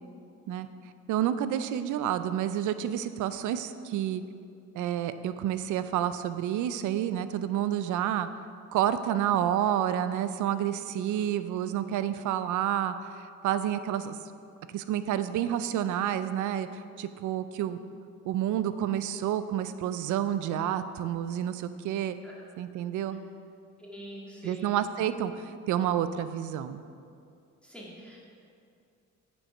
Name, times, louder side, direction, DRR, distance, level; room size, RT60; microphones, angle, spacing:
voice 1, 1.1-4.2 4.7-8.3 8.7-12.9 13.4-14.2 14.7-16.7 17.0-17.8 18.3-22.2 22.6-23.2 24.4-26.8, right 10 dB, 80° right, 12 dB, 0.5 m, -29 dB
voice 2, 23.8-24.7 27.6-28.2, right 1 dB, 5° left, -6 dB, 1.9 m, -44 dB
8.9 x 4.6 x 5.3 m, 2.4 s
cardioid pair, 90°, 30 cm